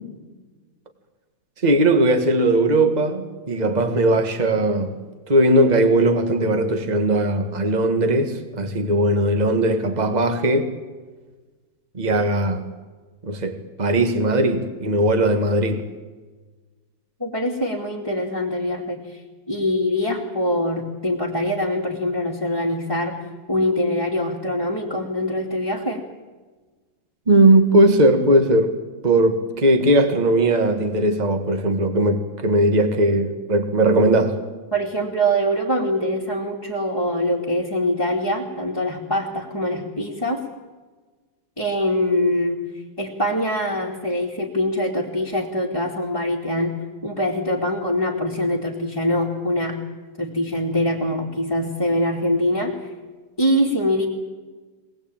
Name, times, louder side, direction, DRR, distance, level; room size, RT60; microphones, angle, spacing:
voice 1, 1.6-5.0 5.3-10.7 11.9-12.6 13.2-15.9 27.3-28.7 29.0-34.4, right 1 dB, 20° right, 1.9 m, -18 dB
voice 2, 17.2-23.2 23.5-26.0 34.7-40.4 41.6-42.6 43.0-46.8 47.0-49.8 50.2-52.8 53.4-54.1, equal, 10° left, 2.5 m, -23 dB
24.0 x 19.0 x 8.9 m
omnidirectional pair, 2.1 m